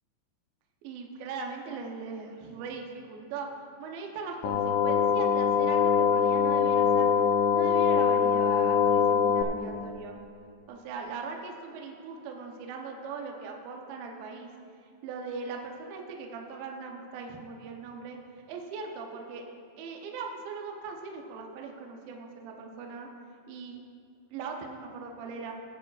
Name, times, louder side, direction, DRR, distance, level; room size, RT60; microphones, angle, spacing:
voice 1, 0.8-3.5 3.8-7.1 7.5-10.1 10.7-14.5 15.0-18.2 18.5-19.4 19.8-23.1 23.5-23.8 24.3-25.5, right 5 dB, 85° right, 1 dB, 2.0 m, -39 dB
sound 1, 4.4-9.4, left 7 dB, 80° left, 2.7 m, -23 dB
17.0 x 9.4 x 2.4 m, 2.4 s
omnidirectional pair, 5.5 m